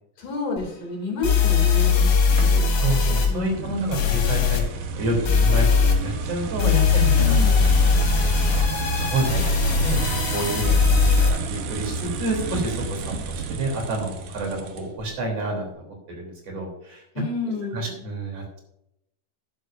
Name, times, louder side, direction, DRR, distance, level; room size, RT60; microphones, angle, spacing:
voice 1, 0.2-2.6 3.3-3.8 7.2-7.7 17.2-18.0, left 3 dB, 50° left, 1 dB, 3.7 m, -31 dB
sound 1, 0.6-0.7 1.2-3.3 3.9-4.6 5.2-6.0 6.6-11.3, left 5 dB, 85° left, 4.1 m, -20 dB
sound 2, 2.4-15.1, right 3 dB, 65° right, 2.1 m, -30 dB
voice 2, 2.8-8.6 9.0-10.0 10.3-17.0 17.4-18.6, right 2 dB, 40° right, 0 dB, 4.0 m, -29 dB
12.5 x 11.0 x 2.6 m, 0.78 s
omnidirectional pair, 4.6 m